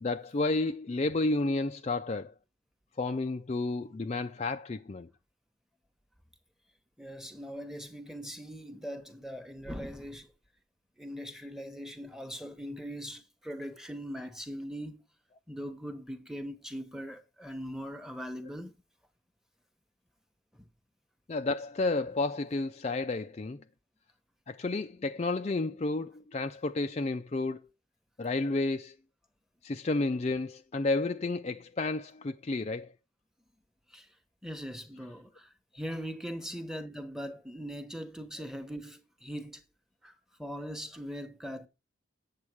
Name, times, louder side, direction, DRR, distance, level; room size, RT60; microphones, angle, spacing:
voice 1, 0.0-2.3 3.0-5.1 21.3-23.6 24.5-27.6 28.2-28.9 29.6-32.9, left 2 dB, 35° left, 0.4 m, -31 dB
voice 2, 7.0-10.3 11.0-15.0 15.5-18.7 20.6-20.7 33.9-34.1 34.4-35.5 35.7-39.6 40.0-40.1 40.4-41.7, equal, ahead, 1.0 m, -40 dB
8.6 x 7.3 x 4.6 m
head